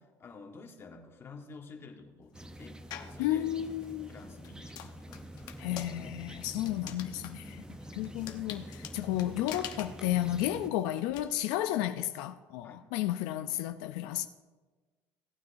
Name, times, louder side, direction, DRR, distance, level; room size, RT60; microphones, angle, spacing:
voice 1, 0.0-3.5 4.1-5.4 7.9-8.0 12.6-12.8, left 4 dB, 35° left, 1.5 m, -50 dB
sound 1, 2.3-10.7, right 1 dB, 10° right, 0.7 m, -47 dB
sound 2, 2.9-3.2 3.8-11.2, left 9 dB, 65° left, 1.0 m, -46 dB
voice 2, 3.2-4.1 5.6-7.7 7.9-14.3, left 13 dB, 85° left, 0.4 m, -32 dB
17.0 x 9.4 x 2.6 m
supercardioid pair, 100°, 8 cm